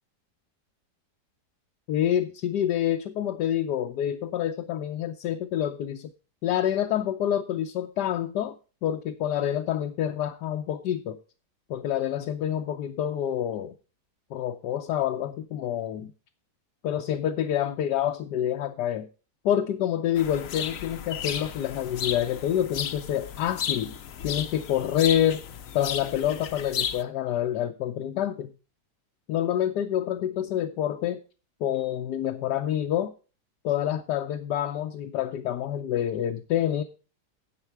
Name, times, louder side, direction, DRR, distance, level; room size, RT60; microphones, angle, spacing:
voice 1, 1.9-6.1 6.4-8.6 8.8-11.2 11.7-13.7 14.3-16.1 16.8-19.1 19.4-23.9 24.2-25.4 25.7-28.5 29.3-31.2 31.6-33.1 33.6-36.8, left 10 dB, 75° left, 1.3 m, -27 dB
sound 1, 20.2-27.0, left 9 dB, 60° left, 1.0 m, -34 dB
9.9 x 7.7 x 4.6 m
omnidirectional pair, 1.9 m